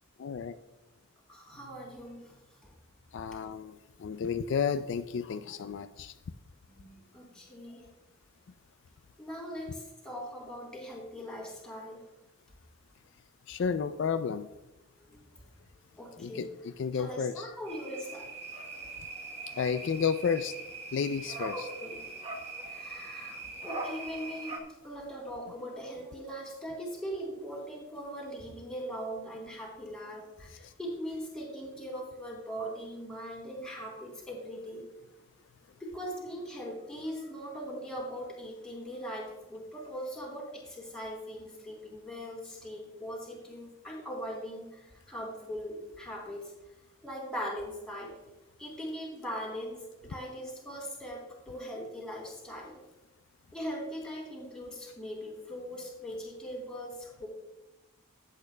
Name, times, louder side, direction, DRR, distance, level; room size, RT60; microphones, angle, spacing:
voice 1, 0.2-0.6 3.1-6.1 13.5-14.5 16.2-17.5 19.5-20.6 20.9-21.7 30.5-30.7, left 6 dB, 60° left, 10 dB, 0.3 m, -32 dB
voice 2, 1.3-2.4 2.6-2.7 6.7-7.9 9.2-12.0 15.1-15.2 15.9-16.5 16.9-18.3 18.6-18.8 21.5-22.0 22.6-34.8 35.8-46.5 47.0-48.1 48.6-52.8 53.5-57.3, equal, 5° left, -5 dB, 3.2 m, -40 dB
sound 1, 17.7-24.6, right 3 dB, 30° right, 1.1 m, -41 dB
14.5 x 8.5 x 2.2 m, 1.0 s
head